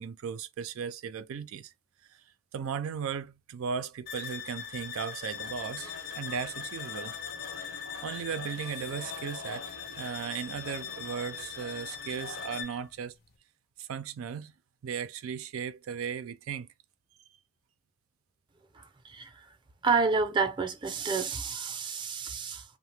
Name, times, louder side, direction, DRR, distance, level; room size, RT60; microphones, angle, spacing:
voice 1, 0.0-1.7 2.1-2.2 2.5-7.2 8.0-13.1 13.8-14.5 14.8-16.7, right 7 dB, 90° right, 0.4 m, -36 dB
sound 1, 4.1-12.9, left 7 dB, 50° left, 0.5 m, -41 dB
sound 2, 5.3-12.6, left 4 dB, 70° left, 1.0 m, -47 dB
voice 2, 18.8-19.3 19.8-22.6, right 4 dB, 25° right, 0.5 m, -29 dB
2.8 x 2.0 x 3.2 m
head